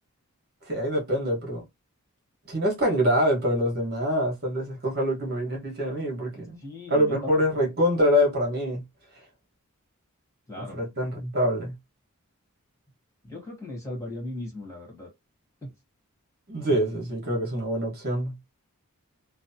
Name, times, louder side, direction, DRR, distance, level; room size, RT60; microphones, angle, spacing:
voice 1, 0.7-1.6 2.5-6.6 6.9-8.8 10.5-11.7 16.5-18.3, equal, 45° right, 1.4 m, -25 dB
voice 2, 6.6-7.4 10.5-10.8 13.2-15.1 15.6-15.7, left 1 dB, 15° left, 1.4 m, -37 dB
3.1 x 2.2 x 2.7 m
head